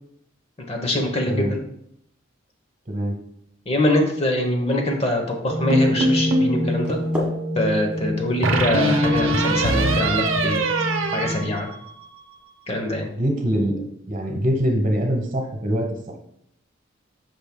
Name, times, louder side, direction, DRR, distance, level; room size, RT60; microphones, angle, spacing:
voice 1, 0.7-1.6 3.7-7.0 7.5-10.6 11.1-11.7 12.7-13.1, left 1 dB, 30° left, 3 dB, 0.9 m, -23 dB
sound 1, 5.4-11.4, left 1 dB, 85° left, 2.0 m, -28 dB
sound 2, 5.7-6.6 8.4-12.2, right 1 dB, 85° right, 0.8 m, -22 dB
sound 3, 6.6-12.4, equal, 5° right, 1.4 m, -38 dB
voice 2, 13.1-13.8 14.1-15.9, equal, 40° right, 2 dB, 1.1 m, -23 dB
8.7 x 5.9 x 2.2 m, 0.74 s
head